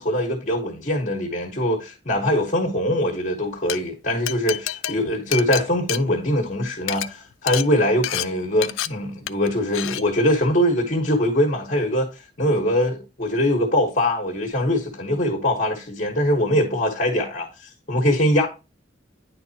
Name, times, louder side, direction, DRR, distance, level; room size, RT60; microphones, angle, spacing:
voice 1, 0.0-12.1 12.4-17.5 17.9-18.5, left 1 dB, 40° left, 1.3 m, -22 dB
Glass, 3.5-3.8 4.3-6.5 6.8-7.1 7.5-7.7 8.0-8.3 8.6-8.9 9.3-9.5 9.7-10.0, left 13 dB, 80° left, 0.3 m, -28 dB
9.7 x 4.1 x 2.8 m
head